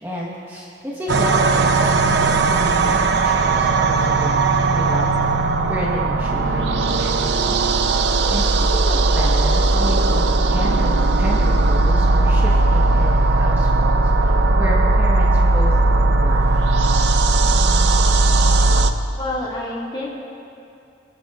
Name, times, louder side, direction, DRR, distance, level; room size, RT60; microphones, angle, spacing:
voice 1, 0.0-2.4 2.7-5.1 5.7-8.0 8.3-15.8 16.1-16.8, equal, 10° right, -5 dB, 1.2 m, -31 dB
sound 1, 1.1-18.9, right 3 dB, 80° right, 0.6 m, -17 dB
voice 2, 19.1-20.1, left 2 dB, 25° left, -5 dB, 1.8 m, -27 dB
21.5 x 12.0 x 2.4 m, 2.6 s
head